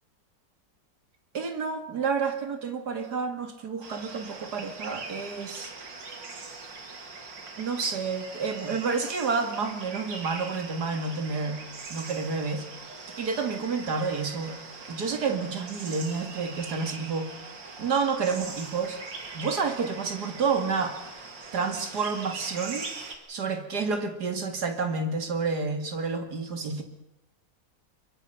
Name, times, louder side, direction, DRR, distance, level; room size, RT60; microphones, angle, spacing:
voice 1, 1.3-5.7 7.6-11.6 11.9-12.7 13.2-14.6 14.9-17.3 17.8-19.0 19.3-21.0 21.5-26.8, right 5 dB, 60° right, 7 dB, 2.7 m, -29 dB
sound 1, 3.8-23.1, right 4 dB, 80° right, 3.0 m, -42 dB
24.0 x 22.5 x 5.9 m, 0.87 s
omnidirectional pair, 1.9 m